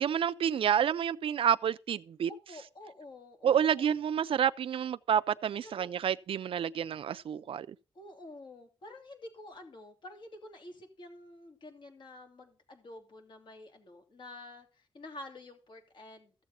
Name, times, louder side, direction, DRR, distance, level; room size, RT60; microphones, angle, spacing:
voice 1, 0.0-2.3 3.4-7.7, right 9 dB, 75° right, 0.4 m, -29 dB
voice 2, 2.3-3.9 5.6-5.9 7.9-16.3, left 2 dB, 60° left, 3.0 m, -49 dB
14.5 x 7.1 x 4.2 m
wide cardioid pair, 145°, 9 cm